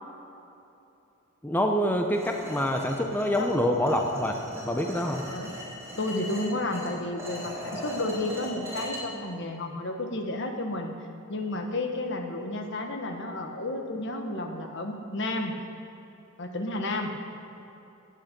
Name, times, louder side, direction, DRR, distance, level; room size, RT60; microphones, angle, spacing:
voice 1, 1.4-5.2, equal, 10° left, 3 dB, 0.6 m, -26 dB
sound 1, 2.1-9.0, equal, 15° right, 3.3 m, -39 dB
voice 2, 5.2-5.6 6.0-10.9 11.3-15.5 16.4-17.1, left 2 dB, 60° left, 4 dB, 1.3 m, -32 dB
15.5 x 9.1 x 5.3 m, 2.9 s
head